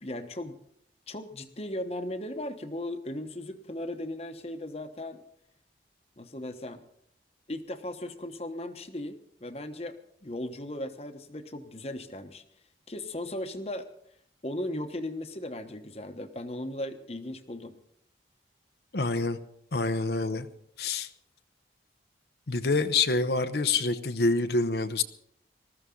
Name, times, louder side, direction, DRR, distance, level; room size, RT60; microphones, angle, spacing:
voice 1, 0.0-0.6 1.1-5.2 6.2-6.8 7.5-9.9 10.2-12.4 12.9-13.9 14.4-17.7, left 1 dB, 35° left, 8 dB, 1.1 m, -37 dB
voice 2, 18.9-19.4 19.7-20.5 20.8-21.1 22.5-25.0, left 3 dB, 65° left, 8 dB, 0.9 m, -26 dB
20.0 x 14.0 x 3.8 m, 0.71 s
head